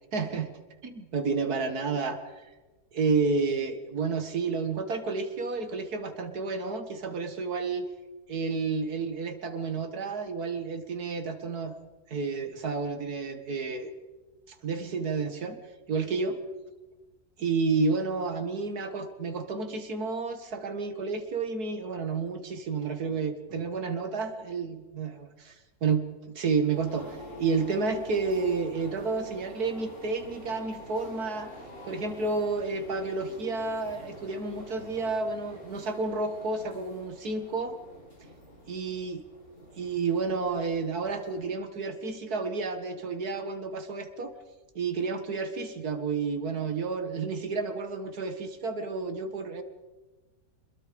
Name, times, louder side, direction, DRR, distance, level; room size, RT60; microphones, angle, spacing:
voice 1, 0.1-0.5 0.8-2.5 2.9-7.9 8.3-11.8 12.1-13.9 14.5-15.6 15.9-16.4 17.4-25.3 25.8-31.5 31.9-37.8 38.7-39.2 39.8-44.3 44.8-49.6, right 4 dB, 75° right, 8 dB, 2.2 m, -30 dB
sound 1, 26.7-41.4, left 1 dB, 65° left, 8.2 m, -47 dB
26.0 x 22.0 x 5.2 m, 1.2 s
omnidirectional pair, 1.6 m